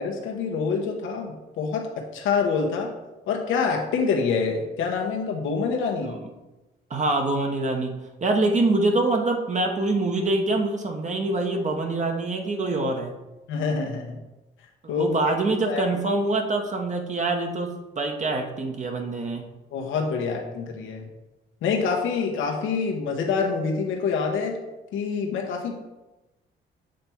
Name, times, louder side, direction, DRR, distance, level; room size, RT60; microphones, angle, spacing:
voice 1, 0.0-2.9 3.3-6.2 13.5-14.2 14.9-15.1 15.7-15.8 19.7-21.0 21.6-24.6 24.9-25.7, left 5 dB, 80° left, 0 dB, 1.0 m, -26 dB
voice 2, 6.9-7.9 8.2-13.1 14.8-19.4, right 2 dB, 35° right, 3 dB, 1.0 m, -25 dB
7.5 x 3.4 x 4.4 m, 1.0 s
cardioid pair, 90°, 20 cm